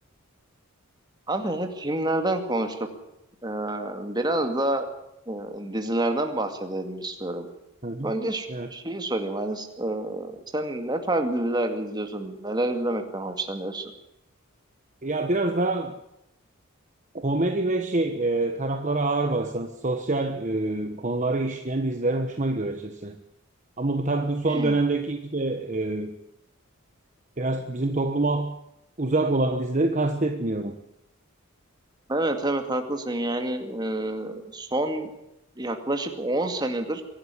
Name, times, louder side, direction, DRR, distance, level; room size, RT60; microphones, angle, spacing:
voice 1, 1.3-2.8 3.4-4.9 5.3-7.5 8.0-13.9 24.5-24.8 32.1-35.1 35.6-37.0, right 1 dB, 20° right, 5 dB, 2.3 m, -28 dB
voice 2, 15.0-15.9 17.1-23.1 23.8-26.1 27.4-28.6 29.0-30.8, right 2 dB, 35° right, 6 dB, 1.2 m, -26 dB
24.5 x 12.0 x 9.9 m, 0.85 s
head